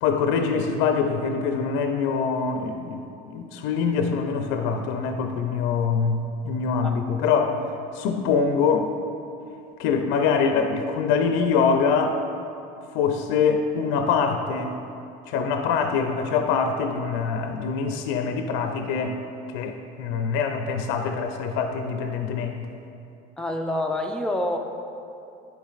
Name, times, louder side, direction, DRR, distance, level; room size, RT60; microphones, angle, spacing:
voice 1, 0.0-7.6 7.9-8.9 9.8-12.2 12.9-14.8 15.3-19.2 19.5-22.7, left 5 dB, 80° left, 5 dB, 0.5 m, -24 dB
voice 2, 23.4-24.6, left 1 dB, 5° left, 2 dB, 0.5 m, -27 dB
10.5 x 4.6 x 2.4 m, 2.7 s
supercardioid pair, 95°, 20 cm